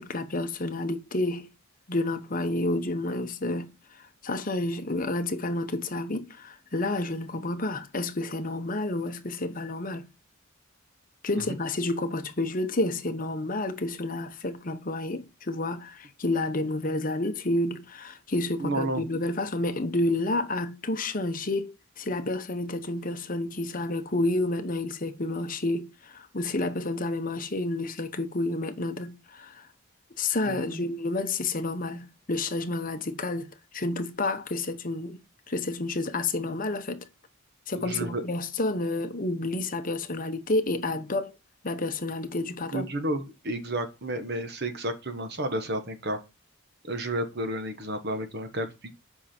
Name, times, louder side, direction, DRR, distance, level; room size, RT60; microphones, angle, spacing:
voice 1, 0.0-1.5 1.9-3.7 4.2-10.1 11.2-29.7 30.2-35.2 35.5-37.0 37.7-41.3 41.6-42.9, left 2 dB, 40° left, 1.0 m, -30 dB
voice 2, 18.6-19.0 30.4-30.8 37.7-38.2 42.7-46.2 46.8-49.0, right 1 dB, 50° right, 1.2 m, -31 dB
7.9 x 5.4 x 4.4 m
head